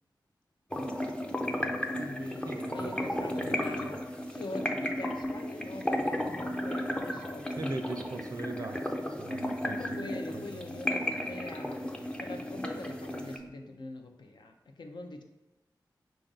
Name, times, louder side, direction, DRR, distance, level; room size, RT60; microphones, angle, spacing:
sound 1, 0.7-13.4, left 1 dB, 10° left, 0.4 m, -34 dB
voice 1, 1.9-2.5 2.7-4.0 4.3-7.6 9.6-11.8 12.2-15.2, left 2 dB, 75° left, 4 dB, 0.5 m, -43 dB
voice 2, 2.4-3.0 3.5-3.6 3.9-4.0 7.6-10.6 11.2-11.3, right 2 dB, 50° right, 5 dB, 0.5 m, -41 dB
4.7 x 2.5 x 3.9 m, 1.0 s
wide cardioid pair, 60°, 8 cm